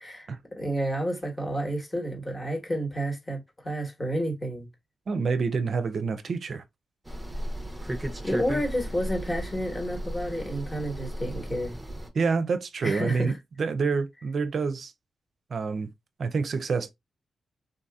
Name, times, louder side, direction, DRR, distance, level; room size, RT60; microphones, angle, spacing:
voice 1, 0.0-4.7 8.2-11.8 12.8-13.3, equal, 20° left, 1.3 m, -30 dB
voice 2, 5.1-6.6 12.1-14.9 15.5-15.9 16.2-16.9, right 4 dB, 55° right, 0.5 m, -27 dB
sound 1, 7.1-12.1, equal, 10° right, 0.7 m, -35 dB
3.7 x 2.7 x 2.3 m
wide cardioid pair, 120°, 0 cm